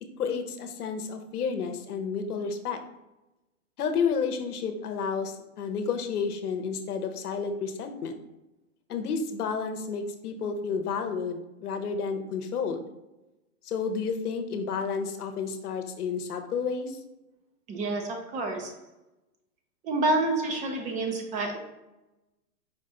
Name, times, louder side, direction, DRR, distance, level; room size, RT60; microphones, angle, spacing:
voice 1, 0.2-2.8 3.8-8.2 8.9-12.9 13.6-17.0, left 5 dB, 85° left, 6 dB, 0.9 m, -31 dB
voice 2, 17.7-18.8 19.8-21.6, right 2 dB, 15° right, 3 dB, 0.5 m, -28 dB
5.1 x 2.5 x 4.1 m, 0.99 s
hypercardioid pair, 135°, 45 cm